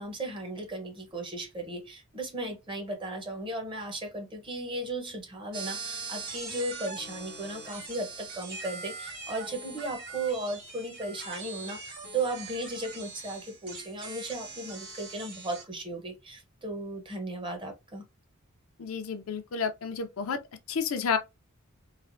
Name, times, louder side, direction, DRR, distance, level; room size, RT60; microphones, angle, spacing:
voice 1, 0.0-18.0, right 2 dB, 25° right, 0.8 m, -36 dB
sound 1, 5.5-15.6, right 4 dB, 50° right, 1.5 m, -41 dB
voice 2, 18.8-20.4 20.7-21.2, left 6 dB, 70° left, 0.5 m, -30 dB
3.2 x 2.1 x 2.5 m
head